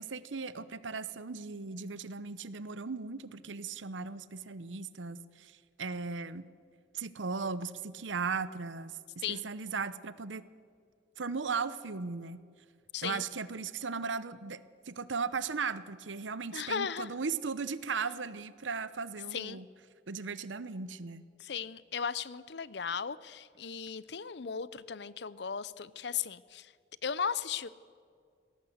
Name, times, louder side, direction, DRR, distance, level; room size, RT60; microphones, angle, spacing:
voice 1, 0.0-6.4 6.9-9.0 9.3-10.4 11.2-12.4 13.0-19.7 20.1-21.3, right 5 dB, 90° right, 15 dB, 0.9 m, -37 dB
voice 2, 16.5-17.1 19.3-19.6 21.4-26.7 27.0-27.7, left 6 dB, 65° left, 17 dB, 0.7 m, -36 dB
20.5 x 17.5 x 8.0 m, 2.1 s
head